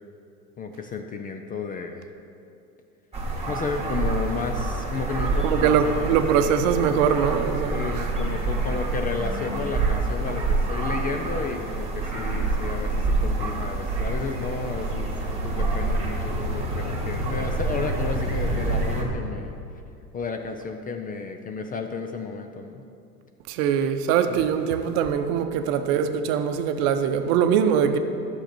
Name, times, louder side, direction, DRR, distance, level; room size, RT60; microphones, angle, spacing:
voice 1, 0.6-2.1 3.5-6.1 7.6-15.1 15.4-19.6 20.1-22.8 24.3-24.4, left 5 dB, 20° left, 5 dB, 0.4 m, -32 dB
sound 1, 3.1-19.0, right 3 dB, 15° right, 2.1 m, -27 dB
voice 2, 5.4-8.1 23.5-28.0, right 8 dB, 55° right, 8 dB, 0.8 m, -22 dB
sound 2, 9.5-10.5 11.1-19.1, equal, 90° left, 1.9 m, -35 dB
11.5 x 6.7 x 4.4 m, 2.6 s
hypercardioid pair, 85°, 46 cm